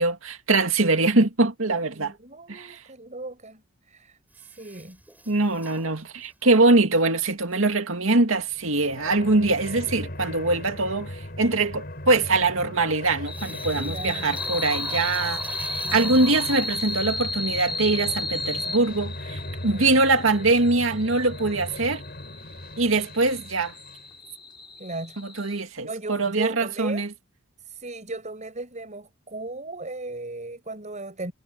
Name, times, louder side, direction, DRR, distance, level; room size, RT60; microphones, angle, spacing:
voice 1, 0.0-2.1 2.5-2.8 5.3-22.0 22.8-23.7 25.2-27.1, right 2 dB, 75° right, 2.2 m, -23 dB
voice 2, 2.0-5.0 13.7-14.4 15.8-16.3 24.8-25.2 25.8-27.1 27.6-31.3, right 2 dB, 35° right, 6.4 m, -37 dB
Toilet flush, 4.3-6.5 13.3-17.4, right 2 dB, 10° right, 6.5 m, -44 dB
sound 1, 8.4-24.1, left 1 dB, 50° left, 6.4 m, -38 dB
sound 2, 13.3-25.6, left 2 dB, 25° left, 3.5 m, -34 dB
head